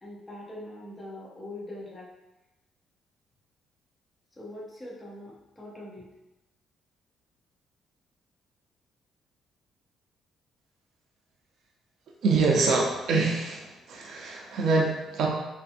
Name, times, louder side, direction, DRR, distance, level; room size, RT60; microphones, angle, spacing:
voice 1, 0.0-2.1 4.4-6.1, left 1 dB, 15° left, -5 dB, 0.6 m, -42 dB
voice 2, 12.2-15.3, right 3 dB, 65° right, 0 dB, 0.5 m, -25 dB
2.5 x 2.5 x 2.5 m, 0.98 s
cardioid pair, 125°, 0 cm